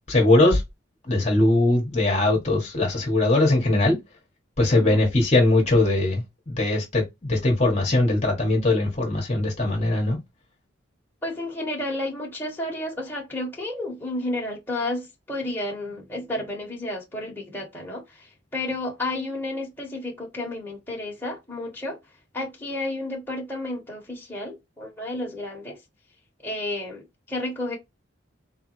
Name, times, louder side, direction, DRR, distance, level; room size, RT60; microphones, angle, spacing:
voice 1, 0.1-0.6 1.0-4.0 4.6-10.2, left 2 dB, 35° left, 1.3 m, -21 dB
voice 2, 11.2-22.0 22.3-25.8 26.4-27.8, left 1 dB, 10° left, 1.5 m, -31 dB
4.1 x 3.5 x 3.1 m
head